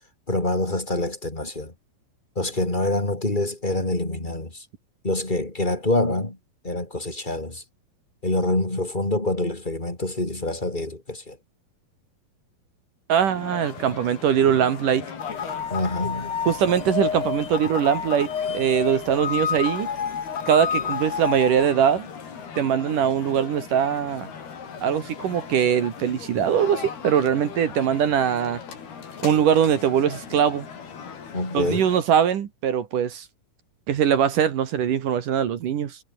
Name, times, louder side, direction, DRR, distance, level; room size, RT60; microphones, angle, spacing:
voice 1, 0.3-1.7 2.4-4.7 5.0-6.4 6.6-7.6 8.2-11.4 15.7-16.3 31.3-31.8, left 2 dB, 10° left, 3.7 m, -26 dB
voice 2, 13.1-15.1 16.5-19.9 20.5-22.1 22.6-24.3 24.8-28.6 29.2-30.7 31.5-33.3 33.9-36.0, right 8 dB, 60° right, 3.2 m, -22 dB
sound 1, 13.3-32.0, left 6 dB, 85° left, 6.2 m, -39 dB
sound 2, 15.2-21.7, left 7 dB, 40° left, 2.4 m, -29 dB
omnidirectional pair, 4.4 m